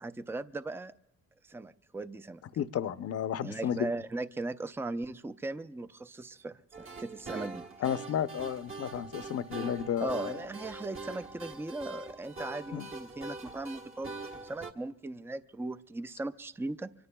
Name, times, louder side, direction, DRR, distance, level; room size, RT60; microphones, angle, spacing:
voice 1, 0.0-0.9 1.4-2.4 3.4-7.7 10.0-16.9, right 2 dB, 10° right, 12 dB, 0.4 m, -38 dB
voice 2, 2.6-3.9 7.8-10.3 12.7-12.9, left 9 dB, 55° left, 13 dB, 0.7 m, -32 dB
sound 1, 6.7-14.7, right 3 dB, 45° right, 1.4 m, -43 dB
25.0 x 23.0 x 2.3 m, 0.94 s
cardioid pair, 90°, 30 cm